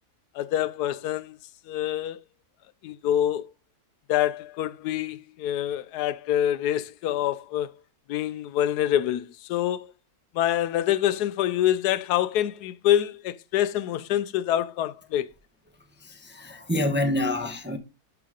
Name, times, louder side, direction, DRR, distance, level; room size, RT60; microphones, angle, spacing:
voice 1, 0.3-1.4 1.7-2.2 2.8-3.5 4.1-7.7 8.1-9.9 10.3-15.3, left 11 dB, 80° left, 1.1 m, -26 dB
voice 2, 16.1-17.8, left 1 dB, 10° right, 0.7 m, -27 dB
12.0 x 4.7 x 3.7 m
omnidirectional pair, 1.7 m